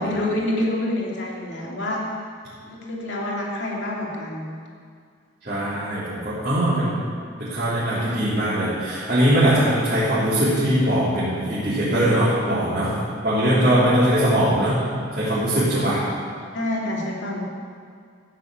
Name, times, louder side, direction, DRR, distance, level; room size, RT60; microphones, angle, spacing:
voice 1, 0.0-2.0 2.6-4.5 13.4-13.7 15.7-15.9 16.5-17.4, left 1 dB, 60° left, -2 dB, 2.5 m, -27 dB
voice 2, 5.4-7.0 7.4-12.9 13.2-14.8 15.1-16.0, right 1 dB, 45° right, -12 dB, 3.7 m, -21 dB
14.5 x 6.7 x 8.2 m, 2.1 s
head